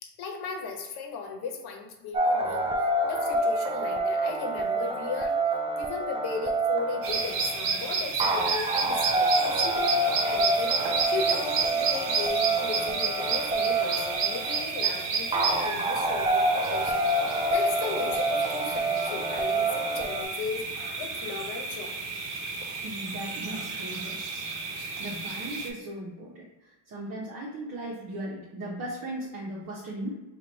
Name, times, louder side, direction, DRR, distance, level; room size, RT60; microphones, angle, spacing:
voice 1, 0.0-5.4 5.8-10.0 10.2-21.9, left 5 dB, 55° left, 2 dB, 1.0 m, -36 dB
sound 1, 2.1-20.2, right 2 dB, 15° right, 0.3 m, -27 dB
sound 2, 7.0-25.7, right 5 dB, 85° right, 0.9 m, -31 dB
voice 2, 22.7-30.1, right 1 dB, 45° right, -6 dB, 1.1 m, -38 dB
3.0 x 2.6 x 4.1 m, 1.1 s
supercardioid pair, 85°, 46 cm